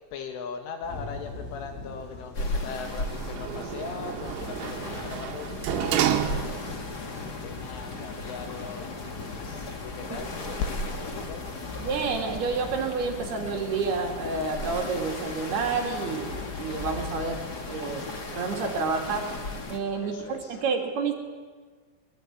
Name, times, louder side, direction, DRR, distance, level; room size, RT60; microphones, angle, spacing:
voice 1, 0.1-11.7 20.0-20.6, left 6 dB, 75° left, 6 dB, 4.1 m, -39 dB
sound 1, 0.8-20.4, left 3 dB, 60° left, 8.6 m, -44 dB
sound 2, 2.3-19.8, left 2 dB, 40° left, 1.4 m, -36 dB
Sliding door, 2.8-6.9 7.4-7.5, right 11 dB, 75° right, 3.7 m, -30 dB
voice 2, 11.8-17.4 17.7-18.1 18.3-19.3 19.7-21.1, right 4 dB, 55° right, 1 dB, 4.7 m, -29 dB
23.5 x 23.0 x 9.8 m, 1.5 s
omnidirectional pair, 5.7 m